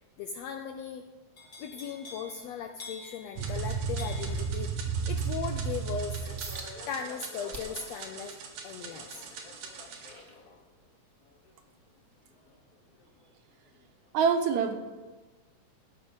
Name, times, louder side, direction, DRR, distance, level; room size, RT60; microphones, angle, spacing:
voice 1, 0.2-1.0 1.6-6.4 6.9-8.3 8.6-9.2, left 7 dB, 80° left, 6 dB, 1.5 m, -38 dB
sound 1, 1.4-13.3 13.7-14.1, left 3 dB, 55° left, 1.1 m, -51 dB
sound 2, 3.4-10.1, right 6 dB, 90° right, 2.9 m, -34 dB
sound 3, 6.4-6.7 7.2-7.9 8.4-11.0 11.5-11.7 12.2-12.3, right 3 dB, 45° right, 0.9 m, -46 dB
voice 2, 14.1-14.8, right 6 dB, 70° right, 6 dB, 2.1 m, -24 dB
14.0 x 5.6 x 7.9 m, 1.3 s
omnidirectional pair, 3.6 m